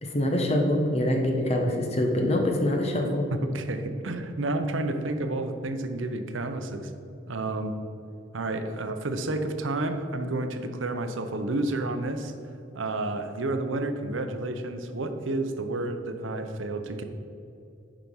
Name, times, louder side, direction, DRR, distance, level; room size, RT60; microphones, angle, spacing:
voice 1, 0.0-3.3, left 1 dB, 30° left, 2 dB, 1.1 m, -25 dB
voice 2, 3.5-6.9 7.3-7.8 8.3-12.3 12.7-17.0, right 2 dB, 80° right, 8 dB, 0.7 m, -30 dB
10.5 x 5.1 x 5.5 m, 2.7 s
head